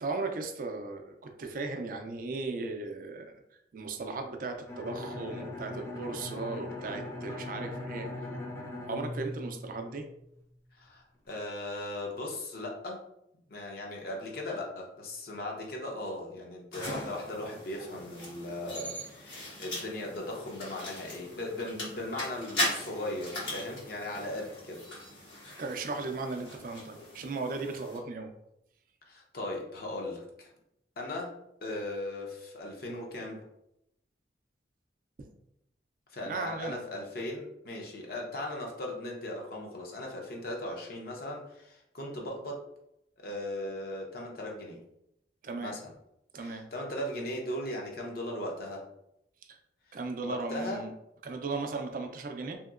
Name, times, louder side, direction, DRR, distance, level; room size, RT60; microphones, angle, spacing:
voice 1, 0.0-3.4 3.7-8.1 8.9-10.1 25.6-28.3 35.2-35.3 36.2-36.8 45.4-45.7 46.3-46.6 49.5-49.6 49.9-50.9 51.2-52.6, right 3 dB, 50° right, 5 dB, 0.4 m, -36 dB
Bowed string instrument, 4.7-10.3, left 2 dB, 15° left, 0.5 m, -40 dB
voice 2, 10.8-13.0 13.5-24.8 29.1-30.5 31.0-31.3 31.6-33.4 36.1-42.6 43.2-44.8 45.6-45.9 46.4-48.8 49.9-50.0 50.2-50.8, left 1 dB, 55° left, -1 dB, 0.6 m, -38 dB
sound 1, 16.7-28.0, left 1 dB, 85° left, 1.5 m, -39 dB
2.8 x 2.7 x 2.4 m, 0.80 s
head